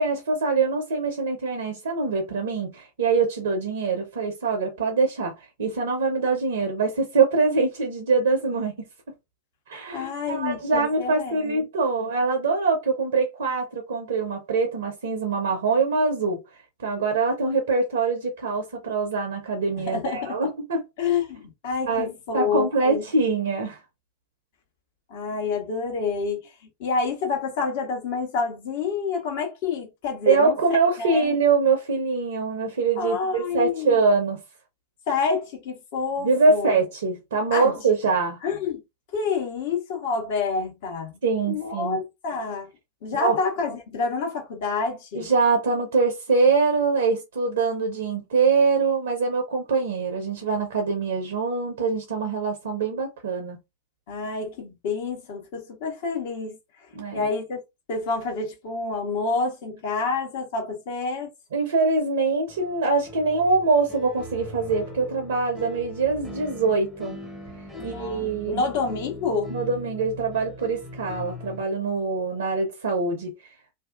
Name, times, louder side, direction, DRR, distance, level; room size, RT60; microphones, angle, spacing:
voice 1, 0.0-8.9 9.7-16.4 16.8-20.8 21.9-23.8 30.3-34.4 36.2-38.4 41.2-42.0 43.1-43.4 45.1-53.6 56.9-57.3 61.5-67.2 67.8-68.6 69.5-73.3, right 4 dB, 65° right, 0.6 m, -24 dB
voice 2, 9.9-11.6 12.0-12.1 19.8-20.4 21.0-23.0 25.1-26.5 26.8-30.5 31.0-31.3 33.0-34.0 35.1-36.7 37.5-37.7 38.4-38.8 39.1-41.2 41.5-42.7 43.0-45.3 54.1-57.6 57.9-61.3 67.8-69.6, left 4 dB, 50° left, 1.0 m, -28 dB
sound 1, 62.5-71.6, equal, 5° left, 0.7 m, -40 dB
2.6 x 2.3 x 2.4 m
figure-of-eight pair, 90°, 0 cm